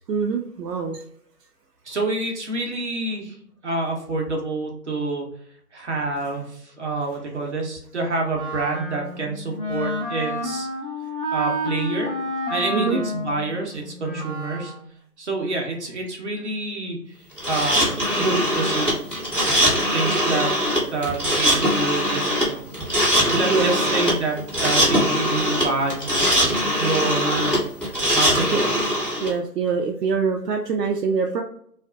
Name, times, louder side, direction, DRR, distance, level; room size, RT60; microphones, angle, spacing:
voice 1, 0.1-1.0 6.3-6.4 7.1-7.2 12.7-13.0 23.5-23.9 28.5-28.6 29.2-31.4, right 5 dB, 85° right, 1 dB, 0.5 m, -24 dB
voice 2, 1.9-3.3 3.6-5.2 5.7-10.7 11.3-12.2 12.5-14.7 15.2-17.0 17.5-17.9 18.1-19.0 19.5-19.6 19.9-20.5 20.9-22.6 23.3-27.5 28.1-28.7, right 3 dB, 45° right, 0 dB, 0.8 m, -27 dB
Wind instrument woodwind instrument, 8.3-14.9, left 1 dB, 35° left, 0.7 m, -30 dB
sound 1, 17.4-29.3, equal, 5° right, 0.9 m, -21 dB
2.6 x 2.4 x 2.2 m, 0.66 s
figure-of-eight pair, 160°, 47 cm